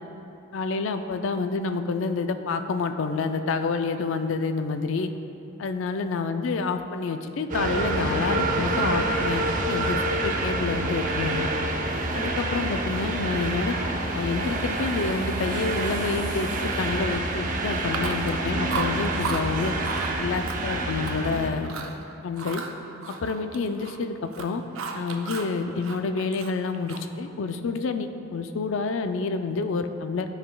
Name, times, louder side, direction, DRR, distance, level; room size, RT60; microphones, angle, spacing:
voice 1, 0.5-5.1 5.6-11.5 12.1-13.8 14.1-16.5 16.8-19.7 20.2-21.8 22.2-22.6 23.1-24.6 24.9-30.3, left 4 dB, 70° left, 8 dB, 0.4 m, -28 dB
sound 1, 7.5-21.5, right 2 dB, 40° right, 0.6 m, -27 dB
Chewing mastication, 17.8-18.4 18.7-19.4 19.8-20.1 20.5-21.3 21.6-22.0 22.4-24.0 24.3-25.5 25.8-27.2, right 5 dB, 85° right, 0.6 m, -34 dB
13.0 x 4.9 x 2.3 m, 2.9 s
head